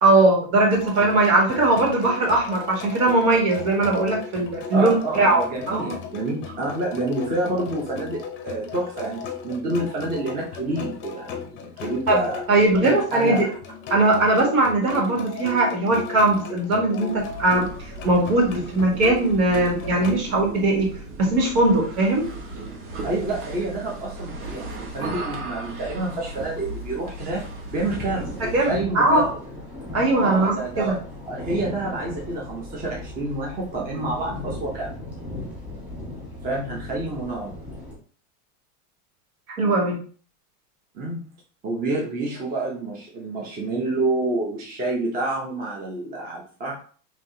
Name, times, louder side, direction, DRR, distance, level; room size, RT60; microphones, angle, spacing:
voice 1, 0.0-6.0 12.1-12.2 12.5-13.5 13.9-17.7 18.0-20.9 21.2-22.3 28.4-29.3 29.9-31.0 39.6-40.0, right 2 dB, 65° right, -1 dB, 2.1 m, -20 dB
sound 1, 0.7-20.2, left 5 dB, 25° left, 0.6 m, -36 dB
voice 2, 4.7-12.4 12.7-13.5 23.0-29.4 30.2-31.0 31.3-35.0 36.4-37.5 40.9-41.3 41.6-46.8, right 2 dB, 20° right, -3 dB, 0.8 m, -28 dB
sound 2, 17.1-28.8, right 2 dB, 85° right, 1.4 m, -37 dB
sound 3, 24.7-37.9, left 1 dB, 5° right, 1.5 m, -38 dB
5.2 x 2.9 x 2.7 m, 0.42 s
supercardioid pair, 150°, 44 cm